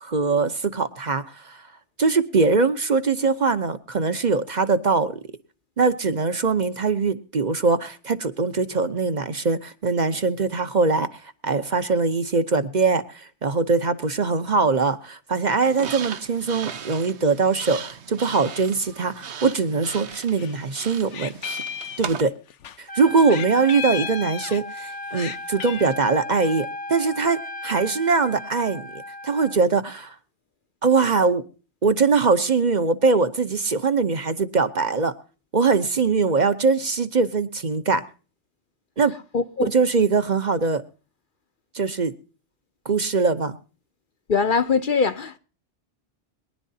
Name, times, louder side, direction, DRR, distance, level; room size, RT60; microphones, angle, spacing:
voice 1, 0.0-1.6 2.0-5.2 5.8-21.6 22.0-22.3 22.8-28.9 29.2-30.2 30.8-31.4 31.8-35.1 35.5-38.0 39.0-39.1 39.7-40.8 41.7-42.1 42.8-43.6, right 4 dB, 40° right, 0.9 m, -22 dB
sound 1, 15.6-22.2, right 7 dB, 70° right, 1.1 m, -37 dB
Meow, 19.9-20.6 20.8-22.8 23.3-24.8 25.1-25.9, left 9 dB, 85° left, 1.1 m, -34 dB
Trumpet, 22.9-29.6, left 1 dB, 10° left, 0.6 m, -35 dB
voice 2, 39.3-39.7 44.3-45.4, left 5 dB, 50° left, 0.8 m, -22 dB
23.0 x 11.0 x 2.8 m
omnidirectional pair, 1.2 m